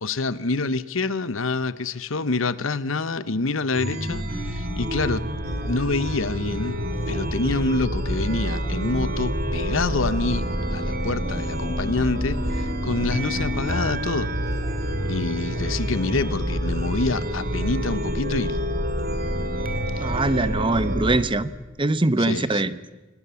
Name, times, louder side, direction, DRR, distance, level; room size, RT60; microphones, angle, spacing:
voice 1, 0.0-5.2 5.6-6.8 7.1-14.3 15.1-18.6 19.9-20.1 22.2-22.6, left 3 dB, 75° left, 16 dB, 1.0 m, -27 dB
Chime, 3.7-21.2, equal, 50° right, 3.0 m, -27 dB
sound 1, 5.4-17.6, left 1 dB, 15° left, 3.5 m, -42 dB
voice 2, 20.0-21.5 21.8-22.7, right 2 dB, 25° right, 14 dB, 0.9 m, -22 dB
27.5 x 20.0 x 7.0 m, 1.1 s
head